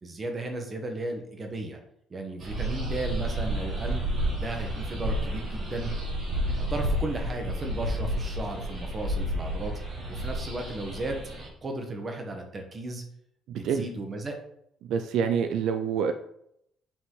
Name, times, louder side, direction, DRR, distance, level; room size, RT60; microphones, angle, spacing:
voice 1, 0.0-1.8 2.1-4.0 4.3-5.9 6.6-9.7 10.1-11.2 11.6-13.0 13.5-14.4, right 2 dB, 20° right, 4 dB, 1.2 m, -35 dB
sound 1, 2.4-11.5, equal, 35° right, 2.3 m, -31 dB
voice 2, 13.5-13.8 14.9-16.1, right 7 dB, 60° right, 7 dB, 0.5 m, -26 dB
8.5 x 5.9 x 3.8 m, 0.74 s
cardioid pair, 175°, 0 cm